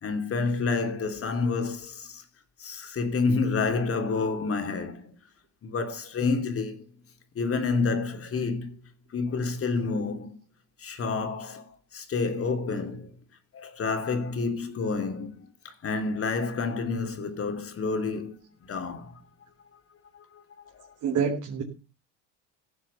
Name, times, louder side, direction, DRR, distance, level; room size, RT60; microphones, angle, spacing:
voice 1, 0.0-2.2 2.6-5.1 5.6-6.8 7.3-8.7 9.1-10.3 10.8-13.1 13.5-18.4 18.7-19.2 20.1-20.4 20.7-20.9, left 4 dB, 40° left, 3.2 m, -29 dB
voice 2, 21.0-21.6, right 6 dB, 55° right, 3.3 m, -26 dB
16.5 x 7.3 x 5.7 m
supercardioid pair, 85°, 36 cm